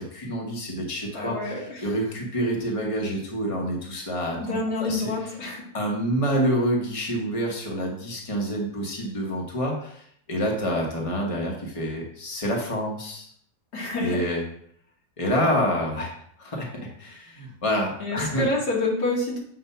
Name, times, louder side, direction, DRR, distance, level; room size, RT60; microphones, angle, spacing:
voice 1, 0.0-5.1 5.7-13.3 14.0-14.4 15.2-16.1 16.4-18.5, equal, 20° left, -1 dB, 1.2 m, -27 dB
voice 2, 1.1-2.0 4.4-5.7 13.7-14.2 18.0-19.4, left 2 dB, 85° left, -3 dB, 2.4 m, -28 dB
7.8 x 2.6 x 5.5 m, 0.66 s
omnidirectional pair, 1.7 m